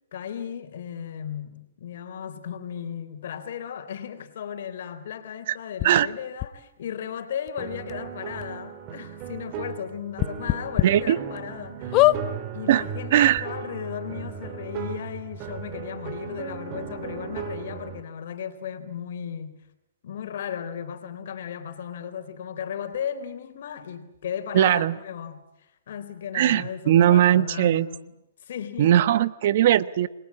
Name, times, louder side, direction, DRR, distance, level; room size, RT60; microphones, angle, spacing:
voice 1, 0.1-12.1 12.5-19.6 20.0-28.1 28.4-29.0, left 8 dB, 60° left, 3.8 m, -35 dB
sound 1, 5.8-5.9 6.4-6.5 7.5-7.6 7.9-8.0 8.4-8.5 10.2-10.9 11.4-11.5 11.9-12.2 13.0-13.1 13.3-13.4, left 19 dB, 35° left, 0.9 m, -20 dB
sound 2, 7.6-18.0, right 7 dB, 35° right, 3.3 m, -36 dB
voice 2, 10.8-11.2 12.7-12.8 13.1-13.4 24.5-25.0 26.3-27.9 28.8-30.1, right 11 dB, 55° right, 1.1 m, -19 dB
29.5 x 21.5 x 8.5 m
hypercardioid pair, 130°, 0 cm